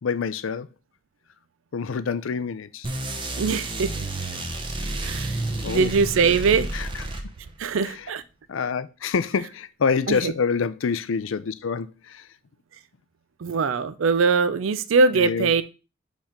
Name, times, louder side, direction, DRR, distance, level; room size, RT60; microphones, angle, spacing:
voice 1, 0.0-0.7 1.7-2.9 5.6-5.9 6.7-7.0 7.9-8.1 8.5-12.3 15.1-15.5, left 5 dB, 75° left, 0.4 m, -27 dB
sound 1, 2.8-7.7, right 2 dB, 25° right, 0.7 m, -30 dB
voice 2, 3.4-3.9 5.0-5.4 5.7-6.7 7.6-8.2 10.1-10.3 13.4-15.6, right 4 dB, 75° right, 0.4 m, -22 dB
5.2 x 3.6 x 5.0 m
head